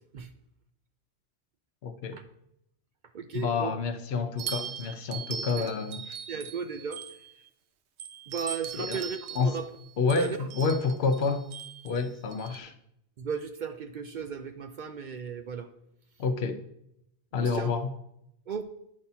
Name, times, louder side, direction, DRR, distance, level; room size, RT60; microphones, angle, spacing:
voice 1, 1.8-2.2 3.3-6.2 8.8-9.0 9.4-9.6 10.0-11.5 11.8-12.7 16.2-16.6 17.3-17.9, left 4 dB, 70° left, 0.9 m, -29 dB
voice 2, 3.1-3.7 5.6-5.7 6.3-7.0 8.3-9.7 10.2-10.4 13.2-15.7 17.4-17.7 18.5-18.6, right 6 dB, 55° right, 0.6 m, -35 dB
sound 1, 4.4-7.5 8.0-12.6, right 7 dB, 85° right, 1.0 m, -40 dB
9.6 x 4.1 x 5.7 m
omnidirectional pair, 1.1 m